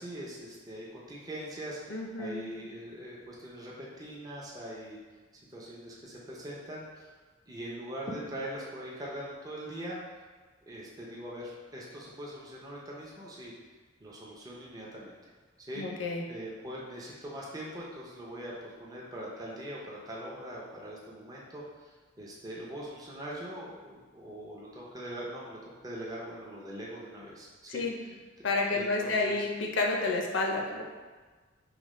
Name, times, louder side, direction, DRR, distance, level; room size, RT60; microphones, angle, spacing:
voice 1, 0.0-5.0 5.5-7.1 7.5-10.0 10.7-13.5 14.0-15.3 15.7-15.9 16.3-28.1 28.7-29.4, right 1 dB, 20° right, -5 dB, 0.5 m, -42 dB
voice 2, 1.9-2.7 15.8-16.2 27.7-27.9 28.4-30.8, left 3 dB, 70° left, 0 dB, 0.5 m, -30 dB
4.9 x 2.1 x 3.1 m, 1.4 s
head